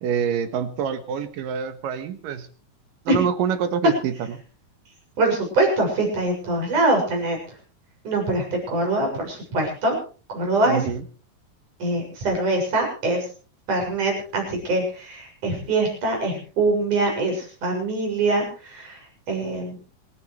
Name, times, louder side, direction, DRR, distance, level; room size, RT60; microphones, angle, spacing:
voice 1, 0.0-2.5 3.1-4.4 10.6-11.0, right 8 dB, 85° right, 10 dB, 3.0 m, -26 dB
voice 2, 5.2-7.4 8.0-10.0 10.3-10.9 11.8-13.3 13.7-19.0 19.3-19.8, right 2 dB, 65° right, 2 dB, 8.3 m, -23 dB
26.5 x 13.5 x 3.2 m, 0.38 s
omnidirectional pair, 3.8 m